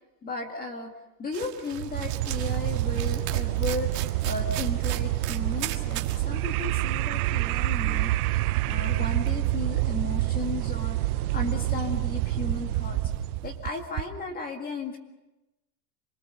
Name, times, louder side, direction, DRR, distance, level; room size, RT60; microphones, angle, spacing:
voice 1, 0.2-0.9 1.2-13.0 13.4-15.0, left 3 dB, 20° left, 3 dB, 2.0 m, -35 dB
sound 1, 1.3-6.2 6.6-6.7 6.9-14.0, right 13 dB, 35° right, 1.9 m, -37 dB
sound 2, 1.7-13.7, right 17 dB, 60° right, 0.7 m, -27 dB
27.5 x 21.5 x 6.9 m, 1.0 s
supercardioid pair, 160°, 49 cm